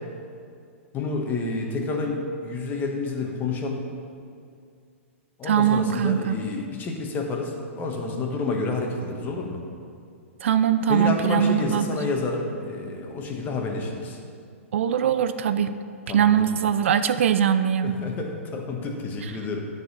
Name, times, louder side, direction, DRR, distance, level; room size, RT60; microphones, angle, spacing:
voice 1, 0.9-3.8 5.4-9.6 10.9-14.2 16.1-16.4 17.8-19.6, left 3 dB, 25° left, 1 dB, 1.2 m, -29 dB
voice 2, 5.5-6.4 10.4-12.0 14.7-15.7 16.1-18.0 19.2-19.3, right 9 dB, 65° right, 11 dB, 0.4 m, -22 dB
9.4 x 4.1 x 6.6 m, 2.3 s
hypercardioid pair, 115°, 7 cm